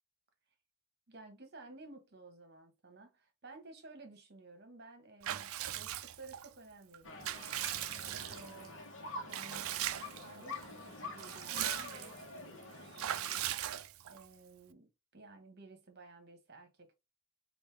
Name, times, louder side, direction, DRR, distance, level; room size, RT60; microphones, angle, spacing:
voice 1, 1.1-7.4 8.3-8.8 9.2-9.7 10.1-13.1 14.1-16.9, right 3 dB, 45° right, 1.1 m, -55 dB
Water / Bathtub (filling or washing) / Liquid, 5.2-6.5 6.9-8.7 9.3-10.3 10.6-10.7 11.0-12.2 13.0-14.2, right 12 dB, 70° right, 0.4 m, -39 dB
sound 1, 7.0-13.5, left 3 dB, 55° left, 1.0 m, -47 dB
5.3 x 2.6 x 3.3 m
head